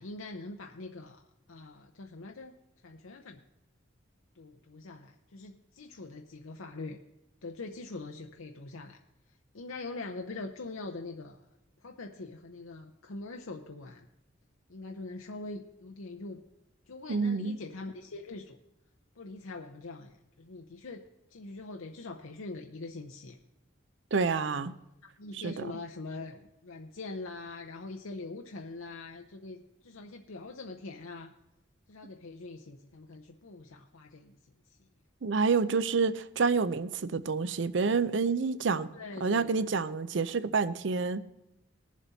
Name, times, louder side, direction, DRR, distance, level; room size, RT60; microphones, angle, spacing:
voice 1, 0.0-2.6 2.8-3.4 4.3-7.0 7.4-9.0 9.3-11.5 11.8-14.1 14.7-16.4 16.9-18.6 19.2-21.0 21.3-23.4 25.0-31.3 31.9-34.8 38.9-39.6, left 3 dB, 85° left, 3 dB, 0.7 m, -43 dB
voice 2, 17.1-17.6 24.1-24.7 25.3-25.7 35.2-38.9 39.2-41.2, right 4 dB, 60° right, 15 dB, 0.5 m, -28 dB
20.0 x 7.4 x 4.1 m, 0.92 s
head